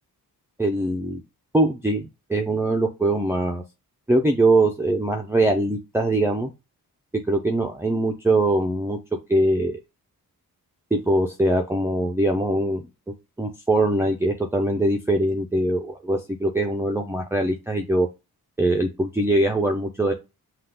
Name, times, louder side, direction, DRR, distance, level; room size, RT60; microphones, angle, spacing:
voice 1, 0.6-1.2 1.5-2.0 2.3-3.6 4.1-6.5 7.3-9.0 9.3-9.8 10.9-12.9 13.4-18.1 18.6-20.1, right 1 dB, 5° right, 0 dB, 0.6 m, -22 dB
5.7 x 2.5 x 3.8 m, 0.25 s
cardioid pair, 90°, 36 cm